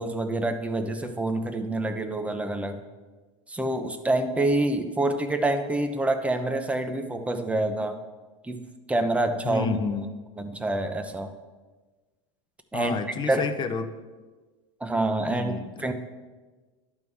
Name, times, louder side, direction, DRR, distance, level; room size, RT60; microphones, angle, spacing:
voice 1, 0.0-2.8 3.5-8.0 8.4-8.6 8.9-9.7 10.4-11.3 12.7-12.9 13.2-13.5 14.8-15.5 15.8-15.9, right 2 dB, 10° right, 7 dB, 0.8 m, -27 dB
voice 2, 9.4-10.1 12.7-13.9 15.3-15.9, left 4 dB, 30° left, 9 dB, 0.8 m, -30 dB
11.0 x 3.7 x 6.3 m, 1.3 s
hypercardioid pair, 105°, 16 cm